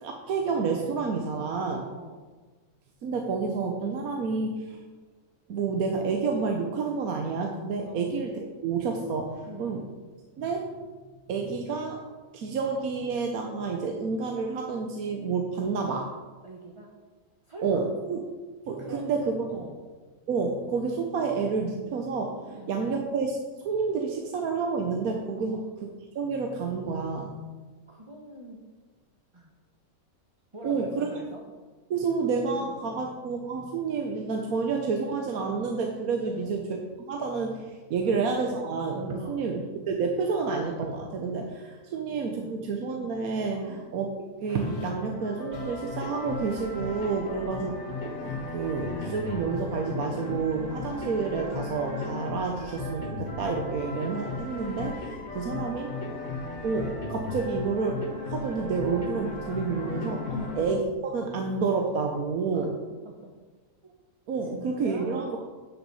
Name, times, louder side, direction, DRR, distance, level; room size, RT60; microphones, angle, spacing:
voice 1, 0.0-1.9 3.0-4.8 5.5-9.8 10.4-10.8 11.3-12.0 12.3-16.1 17.6-18.2 18.7-19.7 20.3-23.4 23.6-25.6 26.1-27.3 30.6-31.1 31.9-36.8 37.1-55.9 56.6-58.0 58.3-60.2 60.5-62.7 64.3-65.4, right 4 dB, 70° right, 2 dB, 1.3 m, -29 dB
voice 2, 1.6-2.3 7.8-8.1 9.4-9.9 16.4-16.9 17.5-17.9 18.8-19.1 19.5-19.8 22.5-22.8 25.4-25.7 27.9-28.6 29.3-29.5 30.5-31.4 32.5-33.1 36.2-36.6 38.0-38.2 39.2-39.5 42.3-42.5 43.5-43.8 47.3-47.6 55.3-55.7 56.1-56.3 60.3-60.6 62.5-62.7 63.0-63.3 63.8-63.9 64.4-65.2, right 1 dB, 25° right, -1 dB, 1.0 m, -44 dB
sound 1, 44.5-60.7, left 3 dB, 50° left, 2.1 m, -36 dB
9.7 x 6.1 x 5.5 m, 1.3 s
omnidirectional pair, 1.6 m